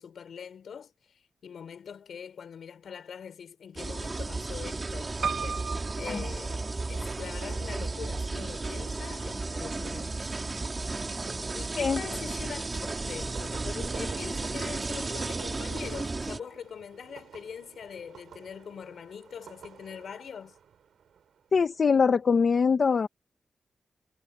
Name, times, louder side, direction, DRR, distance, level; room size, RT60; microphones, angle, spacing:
voice 1, 0.0-10.2 10.5-10.7 11.5-20.5, left 7 dB, 80° left, 4.5 m, -43 dB
sound 1, 3.8-16.4, right 3 dB, 30° right, 4.6 m, -34 dB
Piano, 5.2-7.2 7.8-8.5 8.9-9.0 9.2-9.3, right 6 dB, 70° right, 1.6 m, -35 dB
sound 2, 7.0-22.5, right 8 dB, 90° right, 6.8 m, -50 dB
voice 2, 21.5-23.1, left 5 dB, 55° left, 1.1 m, -22 dB
wide cardioid pair, 110°, 0 cm